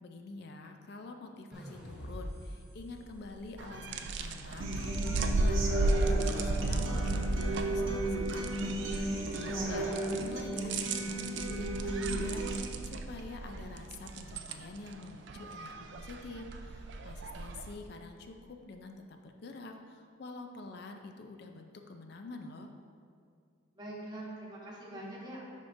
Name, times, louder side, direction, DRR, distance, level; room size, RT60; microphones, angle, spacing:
voice 1, 0.0-9.9 10.2-22.7, left 3 dB, 55° left, 5 dB, 0.4 m, -47 dB
sound 1, 1.5-4.8, equal, 5° right, 0.7 m, -46 dB
sound 2, 3.6-17.7, right 2 dB, 60° right, 0.3 m, -35 dB
Human voice / Acoustic guitar, 4.6-12.6, right 1 dB, 80° right, 0.8 m, -35 dB
voice 2, 9.4-10.0 23.8-25.4, right 1 dB, 20° right, -5 dB, 1.1 m, -43 dB
10.5 x 3.6 x 2.6 m, 2.2 s
head